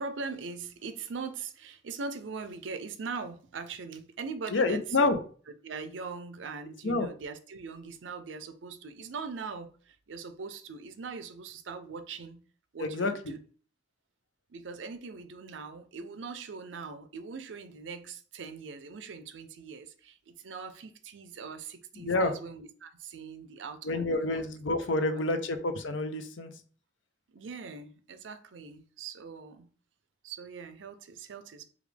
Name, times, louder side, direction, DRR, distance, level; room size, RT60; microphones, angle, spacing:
voice 1, 0.0-5.1 5.6-12.4 12.7-13.4 14.5-24.4 25.0-25.2 27.3-29.7 30.2-31.6, right 4 dB, 80° right, 0.5 m, -41 dB
voice 2, 4.5-5.2 6.8-7.1 12.8-13.1 22.0-22.3 23.8-26.5, left 2 dB, 85° left, 0.6 m, -28 dB
5.0 x 2.4 x 3.3 m
head